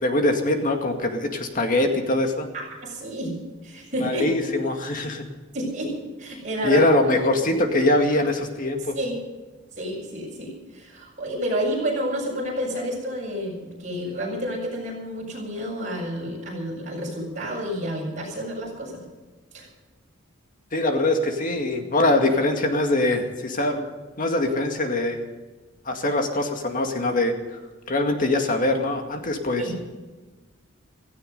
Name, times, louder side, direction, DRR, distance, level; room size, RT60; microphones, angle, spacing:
voice 1, 0.0-2.5 4.0-5.3 6.6-9.0 20.7-23.9 24.2-25.2 25.9-27.6 27.9-29.7, left 2 dB, 40° left, 4 dB, 2.1 m, -23 dB
voice 2, 2.5-3.4 3.6-4.3 5.5-6.9 7.4-7.5 9.0-9.2 9.8-19.0 19.5-19.7 29.6-29.7, equal, 40° right, -2 dB, 7.5 m, -30 dB
17.0 x 15.5 x 5.4 m, 1.2 s
head